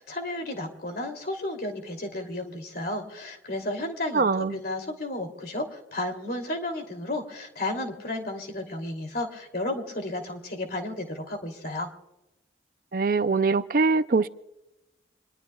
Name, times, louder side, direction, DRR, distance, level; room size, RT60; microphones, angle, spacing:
voice 1, 0.0-11.9, left 1 dB, 55° left, 2.9 m, -33 dB
voice 2, 4.1-4.6 12.9-14.3, right 4 dB, 50° right, 0.5 m, -23 dB
26.5 x 21.0 x 2.3 m
head